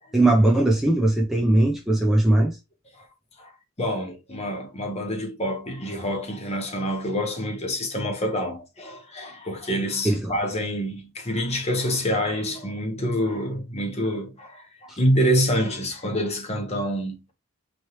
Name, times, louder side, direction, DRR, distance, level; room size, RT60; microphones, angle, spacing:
voice 1, 0.1-2.6 10.0-10.3 14.9-15.0, right 1 dB, ahead, 0.6 m, -19 dB
voice 2, 3.8-17.3, equal, 30° left, 1.1 m, -27 dB
4.3 x 3.1 x 3.1 m
head